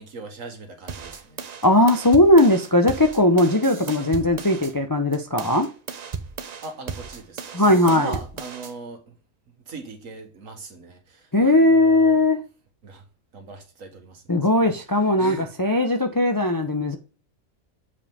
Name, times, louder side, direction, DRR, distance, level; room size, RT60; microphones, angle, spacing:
voice 1, 0.0-1.4 6.6-9.2 9.7-12.2 12.8-13.0 13.3-15.5, right 3 dB, 70° right, 1.8 m, -39 dB
sound 1, 0.9-4.7 5.1-8.7, right 5 dB, 45° right, 0.5 m, -36 dB
voice 2, 1.6-5.7 7.5-8.1 11.3-12.4 14.3-17.0, left 1 dB, 25° left, 0.4 m, -18 dB
7.3 x 4.9 x 3.5 m
omnidirectional pair, 1.4 m